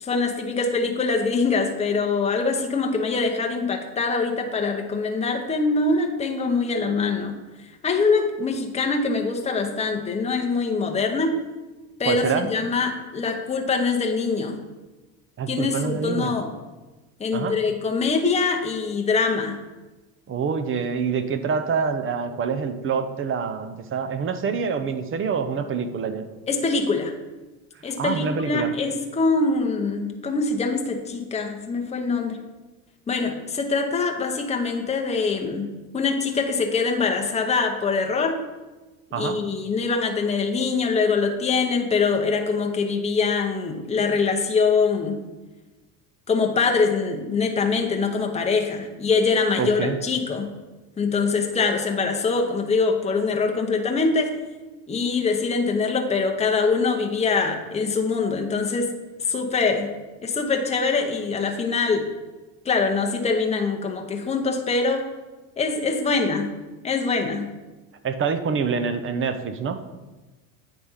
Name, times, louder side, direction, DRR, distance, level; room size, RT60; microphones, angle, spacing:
voice 1, 0.0-7.4 7.8-11.4 12.0-12.2 12.5-14.6 15.5-16.5 17.2-19.6 26.5-27.1 27.8-32.4 33.1-35.7 35.9-38.4 39.1-45.2 46.3-50.5 51.0-54.4 54.9-58.9 59.2-59.9 60.2-62.1 62.6-65.1 65.6-66.5 66.8-67.5, left 4 dB, 15° left, 3 dB, 0.8 m, -23 dB
voice 2, 12.1-12.5 15.4-16.3 17.3-17.6 20.3-26.2 28.0-28.7 39.1-39.4 49.6-50.0 68.0-69.8, right 6 dB, 30° right, 10 dB, 0.6 m, -26 dB
9.0 x 3.3 x 5.6 m, 1.1 s
supercardioid pair, 115°, 42 cm